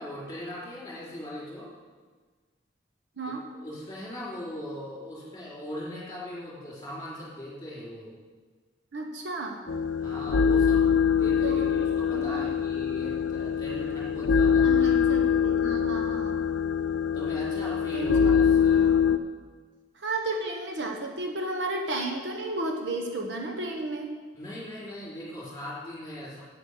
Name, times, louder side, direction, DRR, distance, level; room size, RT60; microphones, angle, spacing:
voice 1, 0.0-1.7 3.3-8.1 10.0-15.4 17.1-18.9 24.3-26.4, left 1 dB, 20° left, -6 dB, 4.1 m, -39 dB
voice 2, 3.2-3.5 8.9-9.6 11.3-11.7 12.1-12.5 14.6-16.4 17.3-17.4 17.9-18.1 18.7-19.2 19.9-24.1, right 2 dB, 75° right, 2 dB, 1.2 m, -33 dB
sound 1, 9.7-19.2, left 7 dB, 90° left, 0.5 m, -24 dB
8.8 x 8.5 x 6.6 m, 1.5 s
head